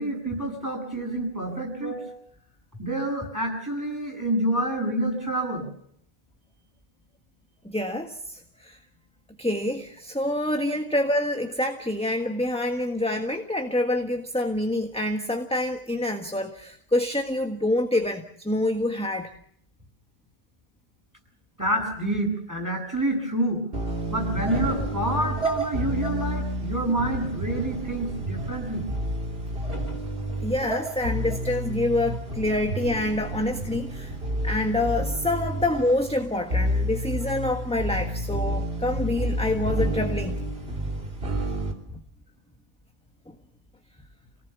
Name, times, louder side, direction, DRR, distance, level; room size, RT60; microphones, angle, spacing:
voice 1, 0.0-2.2 2.8-5.7 21.6-23.6 24.1-28.9, right 1 dB, 15° right, 1 dB, 8.1 m, -28 dB
voice 2, 7.6-8.8 9.4-19.3 30.4-34.1 34.4-40.4, left 1 dB, 5° left, 4 dB, 1.5 m, -27 dB
sound 1, 23.7-41.7, right 1 dB, 75° right, 3.5 m, -30 dB
28.5 x 18.5 x 7.1 m, 0.71 s
omnidirectional pair, 1.0 m